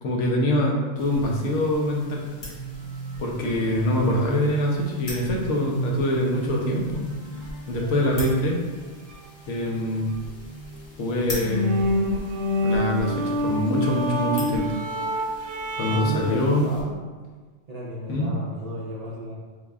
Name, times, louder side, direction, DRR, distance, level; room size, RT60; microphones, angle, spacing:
voice 1, 0.0-2.2 3.2-7.0 7.7-8.6 9.5-10.1 11.0-11.8 12.6-14.7 15.8-16.7 18.1-18.3, left 1 dB, 85° left, -1 dB, 1.0 m, -24 dB
sound 1, 1.0-16.8, left 1 dB, 65° left, 1.2 m, -42 dB
sound 2, 2.4-12.3, right 3 dB, 20° right, 0.6 m, -41 dB
sound 3, 11.3-16.4, left 1 dB, 70° right, 0.8 m, -26 dB
voice 2, 15.9-16.9 17.7-19.4, right 1 dB, 55° right, -6 dB, 0.4 m, -33 dB
3.5 x 3.4 x 2.3 m, 1.4 s
omnidirectional pair, 1.2 m